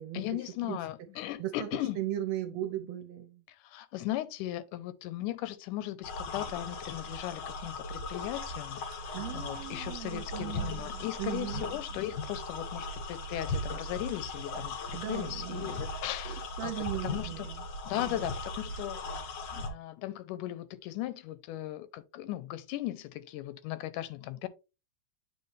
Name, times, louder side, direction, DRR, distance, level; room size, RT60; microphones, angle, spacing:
voice 1, 0.1-2.0 3.5-8.9 9.3-16.7 17.0-17.5 17.9-19.0 19.5-24.5, left 14 dB, 85° left, 2.1 m, -37 dB
voice 2, 1.4-3.4 9.1-11.7 14.9-15.8 16.2-17.6 18.1-18.3, right 13 dB, 75° right, 1.6 m, -38 dB
sound 1, 6.0-19.7, left 2 dB, 65° left, 1.1 m, -38 dB
8.6 x 4.1 x 3.2 m
omnidirectional pair, 3.7 m